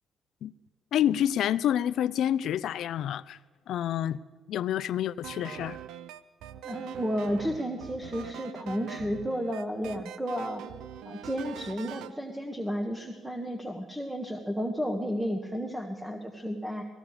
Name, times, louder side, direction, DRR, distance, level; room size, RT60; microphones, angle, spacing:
voice 1, 0.9-3.4 3.7-4.2 4.5-5.8, left 10 dB, 75° left, 16 dB, 0.5 m, -28 dB
sound 1, 5.2-12.2, right 10 dB, 90° right, 0.6 m, -43 dB
voice 2, 6.6-10.6 11.0-16.8, equal, 5° right, 4 dB, 1.5 m, -32 dB
18.5 x 15.5 x 5.0 m, 1.4 s
cardioid pair, 90°, 0 cm